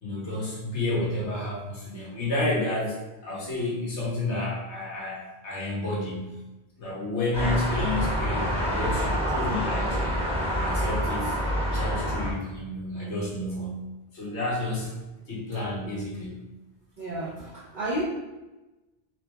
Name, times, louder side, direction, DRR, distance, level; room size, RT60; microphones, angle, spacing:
voice 1, 0.0-6.3 6.8-10.0 10.4-11.4 11.7-13.9 14.1-14.9 15.3-16.4, left 2 dB, 90° left, -5 dB, 1.5 m, -30 dB
sound 1, 7.3-12.3, equal, 5° right, 0.9 m, -27 dB
voice 2, 17.0-18.0, right 1 dB, 50° right, -7 dB, 0.9 m, -32 dB
3.9 x 3.2 x 3.3 m, 1.1 s
omnidirectional pair, 1.1 m